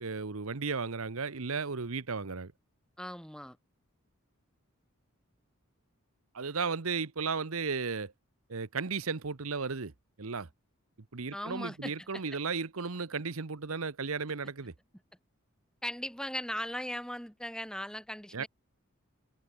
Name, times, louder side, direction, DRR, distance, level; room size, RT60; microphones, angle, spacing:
voice 1, 0.0-2.5 6.3-8.1 8.5-9.9 10.2-10.5 11.1-14.7 18.3-18.4, right 5 dB, 75° right, 1.0 m, -34 dB
voice 2, 3.0-3.6 11.3-12.2 15.8-18.5, equal, 5° left, 6.3 m, -38 dB
head